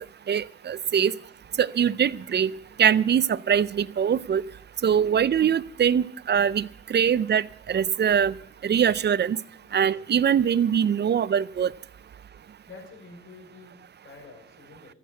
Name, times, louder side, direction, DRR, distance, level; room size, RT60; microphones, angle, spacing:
voice 1, 0.3-1.1 1.6-2.5 2.8-4.4 4.8-8.3 8.6-9.4 9.7-11.7, right 8 dB, 35° right, 20 dB, 0.5 m, -23 dB
voice 2, 12.7-15.0, left 4 dB, 45° left, 1 dB, 5.6 m, -48 dB
15.0 x 8.4 x 8.1 m, 0.78 s
cardioid pair, 90°, 30 cm